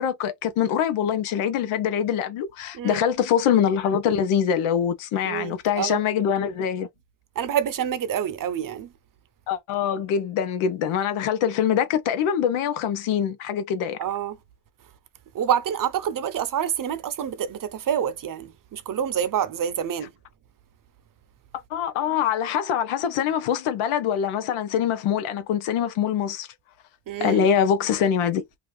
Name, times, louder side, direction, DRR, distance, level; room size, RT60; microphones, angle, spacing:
voice 1, 0.0-6.9 9.5-14.0 21.7-26.5 27.2-28.4, left 8 dB, 90° left, 0.8 m, -24 dB
voice 2, 5.2-6.0 7.4-8.9 14.0-14.4 15.3-20.1 27.1-27.5, right 9 dB, 45° right, 0.6 m, -27 dB
2.5 x 2.4 x 3.1 m
cardioid pair, 75°, 48 cm